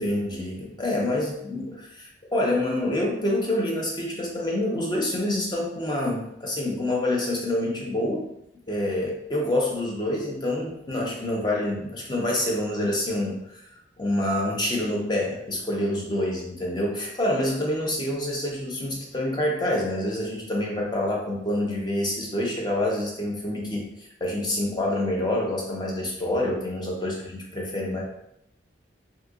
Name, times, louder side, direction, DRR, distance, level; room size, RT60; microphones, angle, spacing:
voice 1, 0.0-8.3 8.7-13.6 14.0-23.9 24.2-28.0, left 1 dB, 25° left, -2 dB, 0.6 m, -27 dB
2.7 x 2.4 x 3.6 m, 0.78 s
head